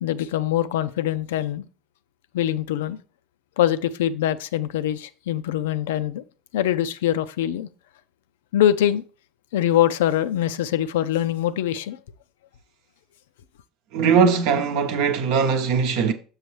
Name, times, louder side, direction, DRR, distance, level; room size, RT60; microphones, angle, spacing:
voice 1, 0.0-1.6 2.3-3.0 3.6-6.2 6.5-7.7 8.5-9.0 9.5-12.0, left 11 dB, 70° left, 0.3 m, -23 dB
voice 2, 13.9-16.1, right 6 dB, 65° right, 0.8 m, -20 dB
6.3 x 6.2 x 3.1 m
figure-of-eight pair, 70°, 0 cm